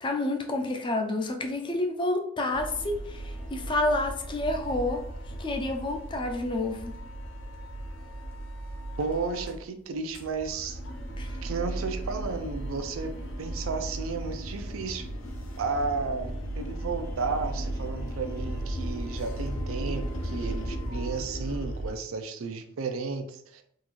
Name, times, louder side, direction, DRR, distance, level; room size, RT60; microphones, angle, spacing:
voice 1, 0.0-5.0 5.4-6.9 11.2-11.3, left 2 dB, 25° left, 4 dB, 0.4 m, -29 dB
sound 1, 2.5-9.6 9.9-21.9, right 1 dB, 70° left, 0.6 m, -36 dB
voice 2, 9.0-10.8 11.4-13.1 13.4-15.1 15.6-23.3 23.5-23.6, right 4 dB, 90° right, 7 dB, 0.5 m, -33 dB
3.7 x 2.5 x 3.0 m, 0.66 s
head